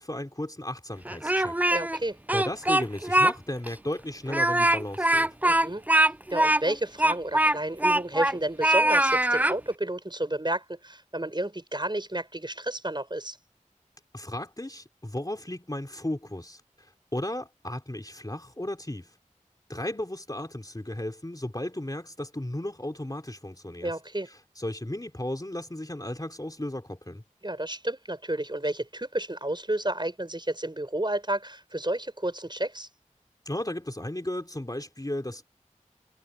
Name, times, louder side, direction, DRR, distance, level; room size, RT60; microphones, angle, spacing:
voice 1, 0.0-1.6 2.3-5.3 14.1-19.1 19.7-23.9 24.6-27.2 33.4-35.4, left 1 dB, 30° left, 3.2 m, -35 dB
Speech, 1.0-2.0 2.3-3.3 3.7-3.8 4.3-8.4 8.6-9.6, right 1 dB, 10° right, 0.4 m, -22 dB
voice 2, 1.7-2.2 5.4-13.4 23.8-24.3 27.4-32.9, right 1 dB, 35° right, 6.1 m, -31 dB
wide cardioid pair, 40°, 13 cm